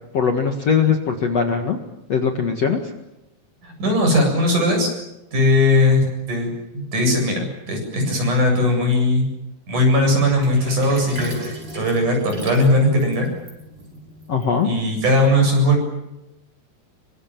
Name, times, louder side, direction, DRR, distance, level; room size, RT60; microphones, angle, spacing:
voice 1, 0.1-1.8 2.1-2.8 14.3-14.7, left 6 dB, 50° left, 4 dB, 2.4 m, -20 dB
voice 2, 3.6-4.9 5.3-9.3 9.7-13.3 14.6-15.9, left 1 dB, 50° right, 3 dB, 9.4 m, -19 dB
Sink (filling or washing), 10.3-15.0, equal, 25° right, 6.9 m, -35 dB
27.5 x 24.5 x 7.6 m, 0.93 s
omnidirectional pair, 4.7 m